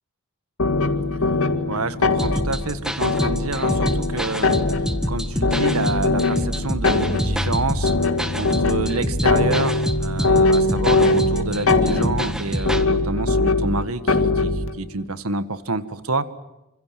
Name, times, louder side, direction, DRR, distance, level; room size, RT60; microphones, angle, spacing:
sound 1, 0.6-14.7, left 3 dB, 70° left, 2.3 m, -22 dB
voice 1, 1.7-4.6 5.1-7.9 8.3-16.2, right 3 dB, 80° right, 12 dB, 1.8 m, -28 dB
sound 2, 2.2-12.8, equal, 5° right, 1.8 m, -27 dB
27.5 x 27.0 x 7.8 m, 0.94 s
head